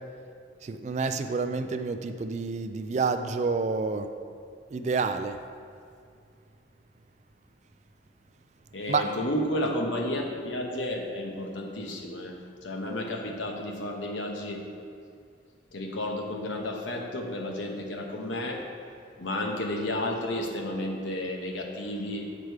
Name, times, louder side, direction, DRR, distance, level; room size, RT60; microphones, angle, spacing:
voice 1, 0.6-4.1 4.7-5.4 8.9-9.1, right 4 dB, 35° right, 8 dB, 0.3 m, -28 dB
voice 2, 8.7-12.4 12.6-14.7 15.7-18.7 19.2-22.4, left 1 dB, 80° left, 1 dB, 1.0 m, -32 dB
8.1 x 5.0 x 4.6 m, 2.3 s
head